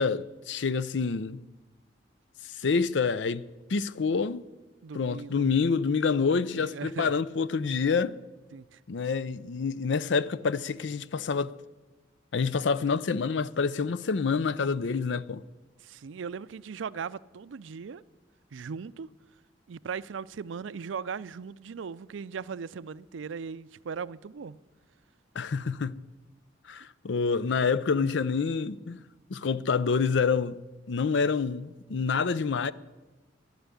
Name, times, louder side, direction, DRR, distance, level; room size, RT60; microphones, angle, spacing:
voice 1, 0.0-1.4 2.4-3.4 3.7-4.4 4.9-8.2 8.9-11.5 12.3-15.4 25.3-26.0 26.7-29.0 29.3-30.6 30.9-32.7, left 5 dB, 70° left, 0.5 m, -27 dB
voice 2, 4.8-5.4 6.6-7.1 8.5-8.8 15.8-18.0 18.5-19.1 19.7-24.6, right 6 dB, 85° right, 0.4 m, -38 dB
11.5 x 10.5 x 9.7 m
head